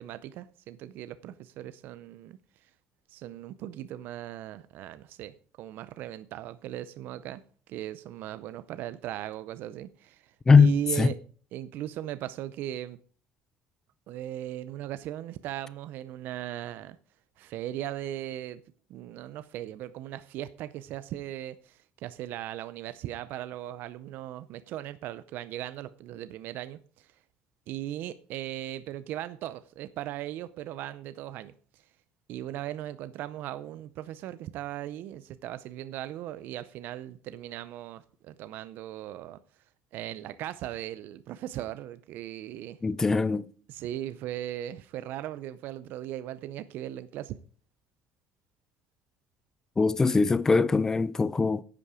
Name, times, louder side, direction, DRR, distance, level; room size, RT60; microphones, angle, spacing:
voice 1, 0.0-2.7 3.1-7.4 7.7-11.2 11.5-13.0 14.1-17.0 17.4-18.6 18.9-27.1 27.7-31.8 32.3-39.4 39.9-42.8 43.7-47.4, right 12 dB, 55° right, 0.5 m, -38 dB
voice 2, 10.5-11.1 42.8-43.5 49.8-51.6, left 4 dB, 10° left, 0.4 m, -21 dB
10.5 x 8.4 x 4.9 m
cardioid pair, 170°, 4 cm